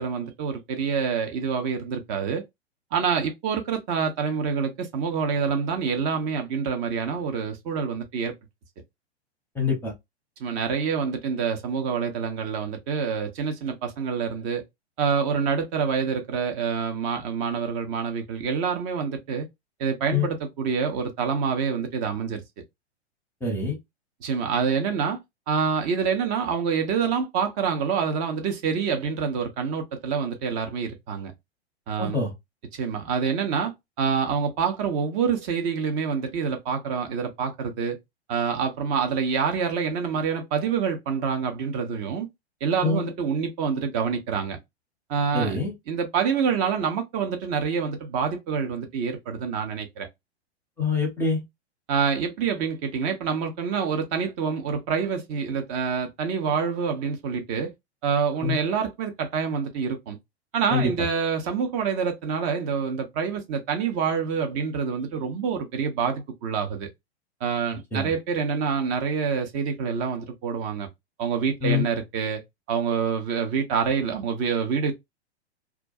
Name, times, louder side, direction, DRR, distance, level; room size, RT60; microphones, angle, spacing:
voice 1, 0.0-2.4 2.9-8.3 10.4-14.6 15.0-19.5 19.8-22.4 24.2-25.2 25.5-31.3 31.9-32.2 32.7-33.7 34.0-38.0 38.3-42.3 42.6-44.6 45.1-45.6 45.9-50.1 51.9-57.7 58.0-60.2 60.5-66.9 67.4-70.9 71.2-72.4 72.7-74.9, right 6 dB, 30° right, 0.6 m, -26 dB
voice 2, 9.5-9.9 20.1-20.3 23.4-23.8 32.0-32.3 42.8-43.1 45.3-45.7 50.8-51.4 58.4-58.6 60.7-61.1 67.9-68.1 71.6-71.8, left 4 dB, 5° left, 0.8 m, -25 dB
2.3 x 2.2 x 2.5 m
figure-of-eight pair, 105°, 33 cm